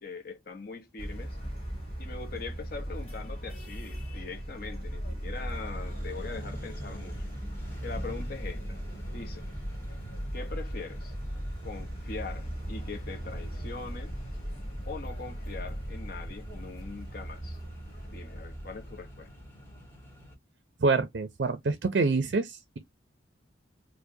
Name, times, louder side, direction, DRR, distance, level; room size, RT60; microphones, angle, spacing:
voice 1, 0.0-1.4 2.0-7.3 7.8-8.8 9.1-9.4 10.3-11.1 11.6-14.1 14.8-17.6 18.1-19.3, left 4 dB, 50° left, 0.8 m, -42 dB
Senado Square in Macao, 1.0-19.8, equal, 30° left, 2.0 m, -38 dB
Accelerating revving vroom, 5.3-20.3, equal, 10° left, 1.2 m, -50 dB
voice 2, 20.8-22.8, right 3 dB, 55° right, 0.4 m, -26 dB
4.6 x 2.1 x 2.6 m
head